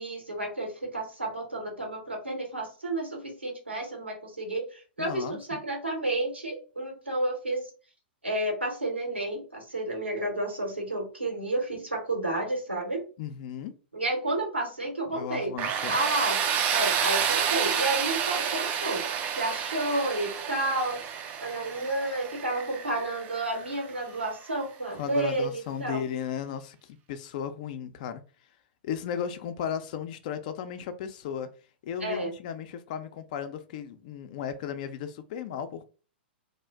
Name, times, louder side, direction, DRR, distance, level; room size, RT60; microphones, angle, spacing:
voice 1, 0.0-7.7 8.2-13.0 13.9-15.5 15.9-16.4 16.7-19.0 19.3-21.0 21.4-26.0 32.0-32.3, right 2 dB, 85° right, 0.9 m, -31 dB
voice 2, 5.0-5.6 13.2-13.7 15.1-16.0 24.9-28.2 28.8-31.5 31.8-35.8, left 8 dB, 45° left, 0.4 m, -35 dB
Tools, 15.6-24.3, right 8 dB, 30° right, 0.3 m, -30 dB
2.4 x 2.0 x 3.3 m
figure-of-eight pair, 100°, 6 cm